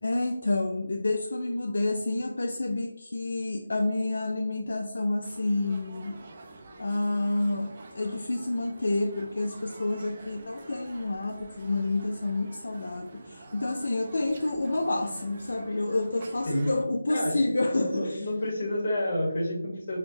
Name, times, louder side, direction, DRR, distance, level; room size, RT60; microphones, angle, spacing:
voice 1, 0.0-6.2 6.8-18.3, left 2 dB, 65° left, 2 dB, 0.3 m, -29 dB
sound 1, 5.2-16.9, right 2 dB, 35° right, 0.4 m, -47 dB
voice 2, 17.7-20.0, left 1 dB, 40° left, -1 dB, 1.1 m, -29 dB
4.4 x 2.1 x 2.6 m, 0.85 s
figure-of-eight pair, 165°, 0 cm